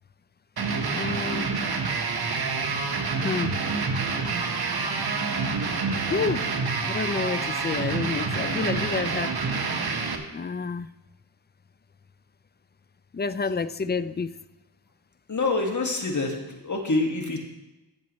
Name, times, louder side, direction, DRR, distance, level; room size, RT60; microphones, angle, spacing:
sound 1, 0.6-10.2, right 4 dB, 60° right, 1.2 m, -27 dB
voice 1, 0.9-1.5 3.2-3.5 6.1-9.4 10.3-10.9 13.1-14.3, left 5 dB, 25° left, 14 dB, 0.4 m, -29 dB
voice 2, 15.3-17.4, left 3 dB, 40° left, 1 dB, 1.9 m, -26 dB
14.0 x 7.3 x 3.1 m, 1.0 s
cardioid pair, 60°, 44 cm